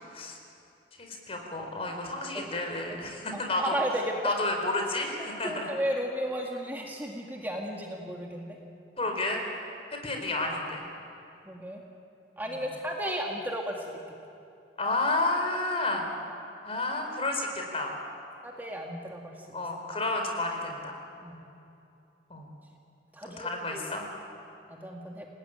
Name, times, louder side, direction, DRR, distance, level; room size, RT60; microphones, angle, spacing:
voice 1, 1.0-3.8 4.2-5.7 9.0-9.4 9.9-10.8 14.8-16.1 16.6-17.9 19.5-21.0 22.3-22.5 23.2-24.1, left 2 dB, 35° left, 3 dB, 4.4 m, -31 dB
voice 2, 3.3-4.4 5.2-8.6 11.5-11.8 12.4-14.0 18.4-19.6 21.2-21.5 23.1-23.8 24.7-25.3, equal, 10° right, 0 dB, 1.9 m, -34 dB
28.5 x 18.5 x 9.0 m, 2.7 s
head